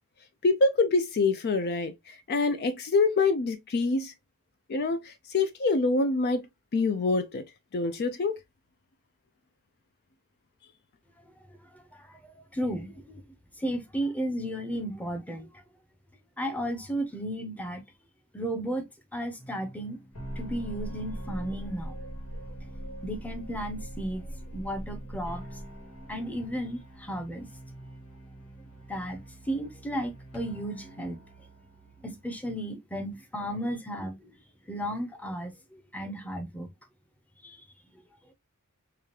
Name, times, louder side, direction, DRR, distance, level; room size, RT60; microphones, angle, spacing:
voice 1, 0.4-4.1 4.7-6.4 6.7-7.4 7.7-8.4, left 3 dB, 45° left, 0.4 m, -25 dB
voice 2, 11.7-12.2 12.5-13.2 13.6-15.5 16.4-17.8 18.3-18.8 19.1-20.0 20.4-21.9 23.0-25.4 26.1-27.5 28.9-29.2 29.5-31.2 32.0-34.3 34.7-36.7 37.4-37.6, equal, 5° left, 0.7 m, -34 dB
sound 1, 19.4-32.7, right 1 dB, 85° left, 1.8 m, -42 dB
4.9 x 2.3 x 2.8 m
head